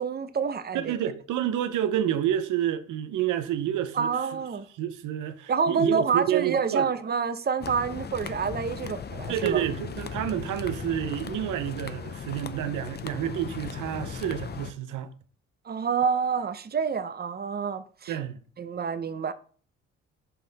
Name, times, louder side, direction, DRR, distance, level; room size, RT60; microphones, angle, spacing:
voice 1, 0.0-1.1 3.9-4.7 5.5-9.6 15.6-18.2 18.6-19.3, right 6 dB, 30° right, 0.7 m, -28 dB
voice 2, 0.7-4.1 4.8-6.9 9.3-15.1 18.1-18.4, right 11 dB, 85° right, 0.8 m, -29 dB
sound 1, 7.6-14.7, left 6 dB, 35° left, 0.6 m, -37 dB
5.7 x 5.6 x 4.0 m
cardioid pair, 90°, 30 cm